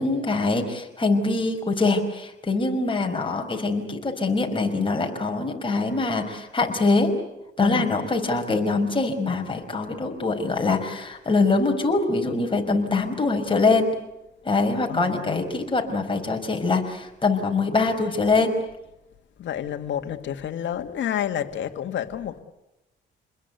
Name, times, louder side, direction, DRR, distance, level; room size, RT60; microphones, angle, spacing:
voice 1, 0.0-7.1 7.6-13.9 14.4-18.5, left 3 dB, 25° left, 3 dB, 5.2 m, -23 dB
voice 2, 14.9-15.6 19.4-22.4, left 10 dB, 70° left, 6 dB, 2.0 m, -30 dB
28.5 x 21.5 x 8.3 m, 0.91 s
cardioid pair, 90°, 20 cm